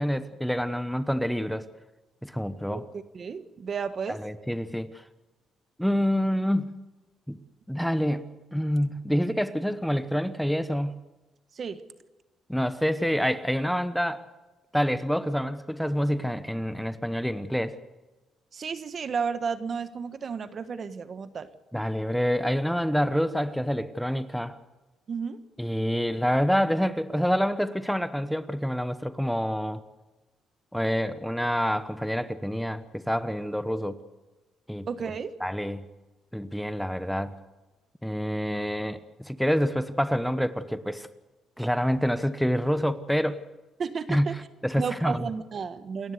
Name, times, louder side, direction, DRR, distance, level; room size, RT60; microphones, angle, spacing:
voice 1, 0.0-1.6 2.2-2.8 4.1-5.0 5.8-6.7 7.3-7.4 7.7-11.0 12.5-14.3 14.7-17.8 21.7-24.6 25.6-29.8 30.7-34.0 34.7-34.9 35.4-35.8 36.3-37.4 38.0-41.1 41.6-43.4 44.1-45.3, equal, ahead, 12 dB, 1.0 m, -27 dB
voice 2, 3.1-4.2 11.5-11.8 18.5-21.5 25.1-25.4 34.9-35.3 43.8-44.3 44.8-46.1, right 6 dB, 50° right, 11 dB, 1.4 m, -32 dB
28.5 x 12.0 x 8.1 m, 1.1 s
cardioid pair, 90°, 0 cm